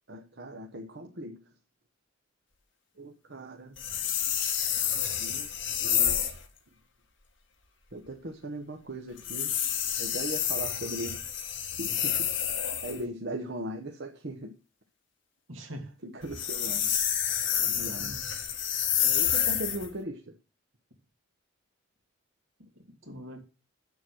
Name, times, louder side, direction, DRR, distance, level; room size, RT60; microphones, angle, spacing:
voice 1, 0.1-1.4 3.0-3.8 5.2-6.3 7.9-9.5 10.0-11.2 11.8-14.6 16.0-16.9 17.6-18.2 19.0-20.3, right 1 dB, 55° right, 1.1 m, -39 dB
sound 1, 3.8-6.4 9.2-13.0 16.2-19.9, left 9 dB, 60° left, 1.9 m, -29 dB
voice 2, 15.5-16.0 17.8-18.2 22.7-23.4, equal, 70° right, 2.6 m, -43 dB
8.0 x 7.1 x 6.1 m
head